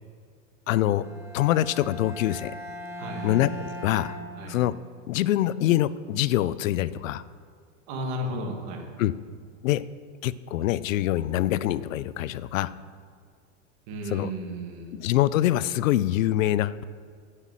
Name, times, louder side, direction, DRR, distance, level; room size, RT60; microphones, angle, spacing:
voice 1, 0.7-1.1 1.3-2.5 3.2-4.1 4.5-4.8 5.1-7.2 9.0-9.1 9.6-9.8 10.2-12.7 14.1-14.3 14.9-16.8, left 13 dB, 85° left, 17 dB, 0.6 m, -24 dB
Bowed string instrument, 0.9-5.0, right 1 dB, 5° right, 0.8 m, -39 dB
voice 2, 2.9-3.4 4.3-4.6 7.9-8.8 13.9-15.0, equal, 35° right, 2 dB, 1.9 m, -34 dB
9.9 x 8.3 x 7.3 m, 2.1 s
supercardioid pair, 175°, 38 cm